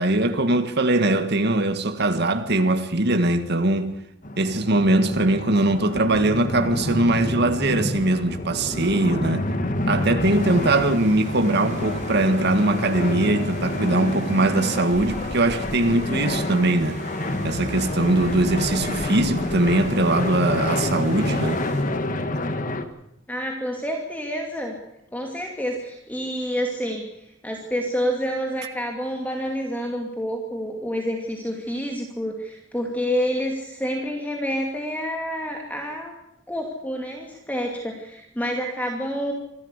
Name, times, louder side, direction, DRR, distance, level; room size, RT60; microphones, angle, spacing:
voice 1, 0.0-3.9 4.4-9.5 9.9-17.0 17.4-21.6, right 2 dB, 60° right, 1.8 m, -21 dB
sound 1, 4.2-22.8, left 1 dB, 45° left, 1.7 m, -28 dB
sound 2, 10.2-21.8, right 3 dB, 40° right, 5.2 m, -42 dB
sound 3, 14.9-21.0, equal, 65° left, 4.6 m, -40 dB
voice 2, 23.3-24.7 25.1-27.1 27.4-36.1 36.5-39.3, equal, 10° left, 2.5 m, -28 dB
25.5 x 13.5 x 8.1 m
head